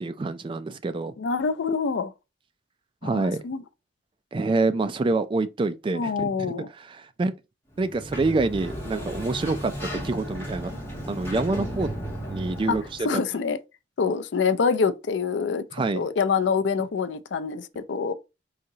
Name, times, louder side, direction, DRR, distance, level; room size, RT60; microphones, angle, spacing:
voice 1, 0.0-1.1 3.0-3.4 4.3-7.3 7.8-10.7 11.1-11.9 12.3-13.2 15.7-16.1, right 3 dB, 30° right, 0.3 m, -27 dB
voice 2, 1.2-2.1 3.0-3.6 5.9-6.7 12.7-12.8 13.0-13.6 14.0-15.6 15.9-18.1, left 5 dB, 80° left, 0.4 m, -25 dB
Sliding door, 7.7-13.1, equal, 15° left, 1.6 m, -34 dB
4.8 x 2.8 x 2.7 m
head